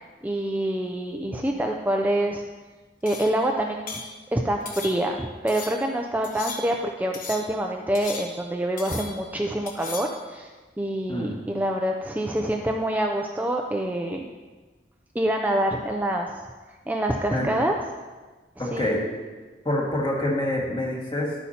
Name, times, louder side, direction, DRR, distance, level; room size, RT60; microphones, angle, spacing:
voice 1, 0.0-2.4 3.0-4.0 4.3-14.3 15.1-16.3 16.9-17.8 18.6-19.0, right 1 dB, 10° right, 2 dB, 0.4 m, -26 dB
sound 1, 3.1-3.4 3.9-4.1 4.7-5.2 5.5-5.9 6.2-6.8 7.1-7.6 7.9-8.5 8.8-9.3 9.7-10.2, left 4 dB, 50° left, 1.3 m, -38 dB
voice 2, 18.6-19.2 19.7-21.3, left 1 dB, 25° left, -3 dB, 1.8 m, -26 dB
11.5 x 8.4 x 2.8 m, 1.3 s
head